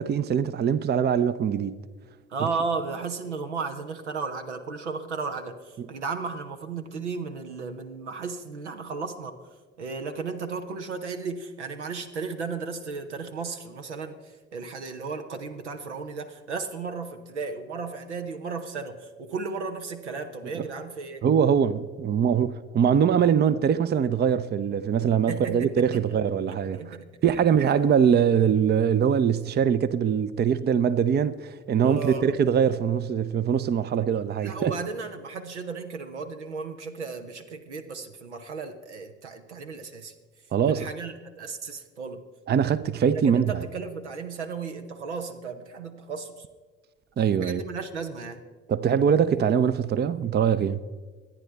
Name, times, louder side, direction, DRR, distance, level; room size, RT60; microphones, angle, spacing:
voice 1, 0.0-1.8 2.4-2.5 20.6-20.7 21.2-26.8 27.2-34.7 40.5-40.9 42.5-43.6 47.2-47.6 48.7-50.8, right 7 dB, 30° right, 0.6 m, -23 dB
voice 2, 2.3-9.4 9.8-21.2 25.3-26.2 26.5-27.1 31.8-32.3 34.4-40.1 40.7-42.2 43.1-46.4 47.4-48.4, right 4 dB, 80° right, 0.9 m, -34 dB
24.5 x 10.0 x 3.4 m
figure-of-eight pair, 45°, 34 cm